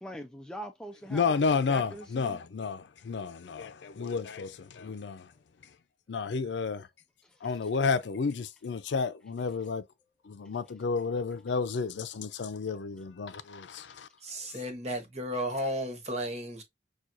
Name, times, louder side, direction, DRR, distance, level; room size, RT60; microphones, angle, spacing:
voice 1, 0.0-1.4 1.7-2.4, equal, 5° left, 0.4 m, -42 dB
voice 2, 1.1-5.3 6.1-6.9 7.4-9.8 10.3-14.1, left 5 dB, 85° left, 0.5 m, -31 dB
voice 3, 14.2-16.6, equal, 40° right, 1.2 m, -34 dB
6.1 x 2.3 x 2.6 m
head